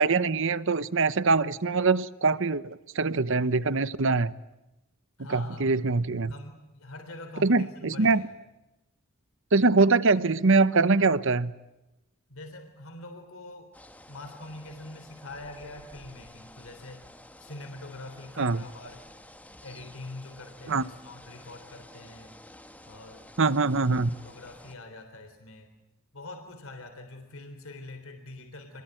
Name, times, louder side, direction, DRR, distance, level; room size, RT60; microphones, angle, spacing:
voice 1, 0.0-4.3 5.3-6.3 7.4-8.3 9.5-11.5 18.4-18.6 20.7-20.9 23.4-24.1, right 3 dB, 60° right, 1.0 m, -23 dB
voice 2, 5.2-5.6 6.3-8.3 12.3-13.7 14.1-17.1 17.4-19.0 19.6-22.4 22.9-23.3 24.2-25.7 26.1-28.8, left 2 dB, 70° left, 3.7 m, -44 dB
sound 1, 13.7-24.8, left 1 dB, 5° left, 1.5 m, -51 dB
28.0 x 21.5 x 9.2 m
head